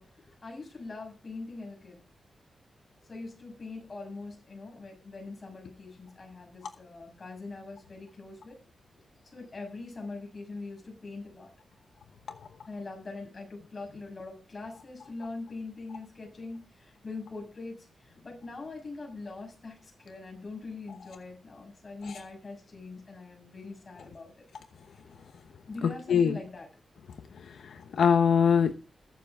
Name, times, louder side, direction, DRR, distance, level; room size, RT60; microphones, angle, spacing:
voice 1, 0.0-2.0 3.1-8.6 9.3-11.5 12.7-24.3 25.7-26.7, left 3 dB, 35° left, 1 dB, 6.7 m, -42 dB
voice 2, 25.8-26.4 27.7-28.7, left 7 dB, 85° left, 8 dB, 0.9 m, -23 dB
21.5 x 7.4 x 3.6 m, 0.34 s
wide cardioid pair, 125°, 0 cm